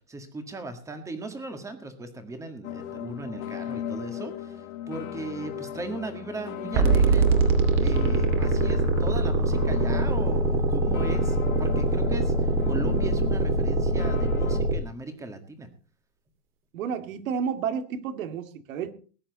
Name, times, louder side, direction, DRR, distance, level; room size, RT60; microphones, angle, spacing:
voice 1, 0.1-7.5 7.8-15.7, right 2 dB, 5° right, 8 dB, 1.7 m, -38 dB
sound 1, 2.6-14.6, left 10 dB, 60° left, 1.9 m, -37 dB
sound 2, 6.7-14.7, right 3 dB, 25° right, 2.5 m, -23 dB
voice 2, 16.7-18.9, right 7 dB, 60° right, 9 dB, 2.4 m, -31 dB
20.0 x 10.0 x 4.1 m, 0.39 s
supercardioid pair, 170°, 45 cm